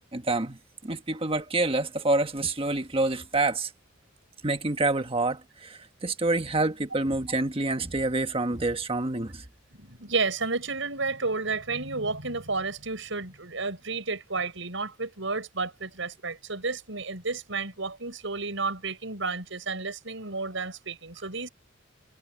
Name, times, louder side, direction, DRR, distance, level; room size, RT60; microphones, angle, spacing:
voice 1, 0.1-3.7 4.4-9.4, right 2 dB, 30° right, 1.5 m, -27 dB
voice 2, 9.7-21.5, right 3 dB, 75° right, 7.4 m, -31 dB
head